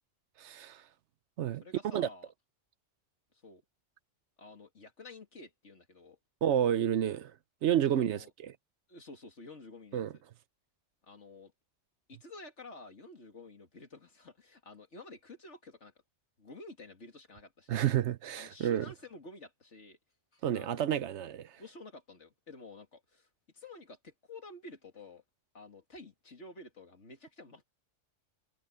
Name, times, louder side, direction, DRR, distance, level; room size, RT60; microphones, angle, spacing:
voice 1, 0.4-0.8 1.4-1.6 1.9-2.1 6.4-7.3 7.6-8.5 9.9-10.1 17.7-18.8 20.4-21.6, right 10 dB, 70° right, 0.9 m, -30 dB
voice 2, 1.6-2.3 3.3-3.6 4.4-6.2 7.9-8.3 8.9-10.2 11.0-11.5 12.1-15.9 16.4-17.9 18.4-20.0 20.3-20.9 21.6-23.3 23.5-25.2 25.5-27.6, left 2 dB, 70° left, 2.9 m, -51 dB
omnidirectional pair, 1.3 m